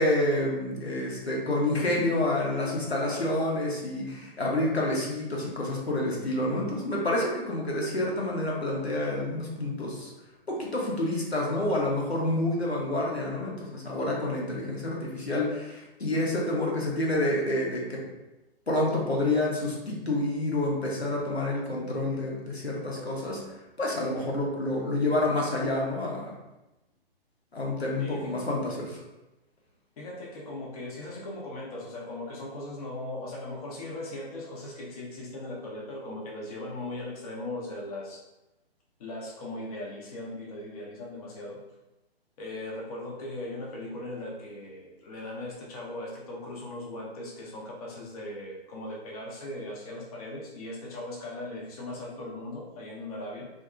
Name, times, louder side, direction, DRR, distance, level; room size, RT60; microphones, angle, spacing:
voice 1, 0.0-10.1 10.5-18.0 18.7-23.4 23.8-26.3 27.5-29.0, left 1 dB, 85° left, -3 dB, 0.9 m, -28 dB
voice 2, 28.0-28.5 30.0-38.2 39.0-41.6 42.4-53.5, left 1 dB, 35° left, -3 dB, 0.6 m, -38 dB
2.6 x 2.4 x 2.4 m, 0.99 s
figure-of-eight pair, 125°, 31 cm